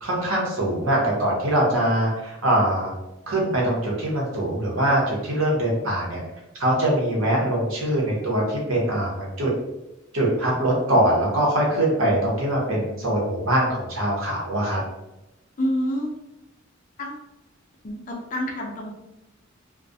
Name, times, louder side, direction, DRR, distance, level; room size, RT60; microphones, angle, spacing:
voice 1, 0.0-2.9 3.3-6.2 6.6-9.5 10.1-14.8, right 1 dB, 90° right, -3 dB, 0.8 m, -23 dB
voice 2, 15.6-16.1 17.0-17.1 17.8-18.9, equal, 40° left, -1 dB, 0.5 m, -27 dB
2.3 x 2.1 x 2.6 m, 0.92 s
head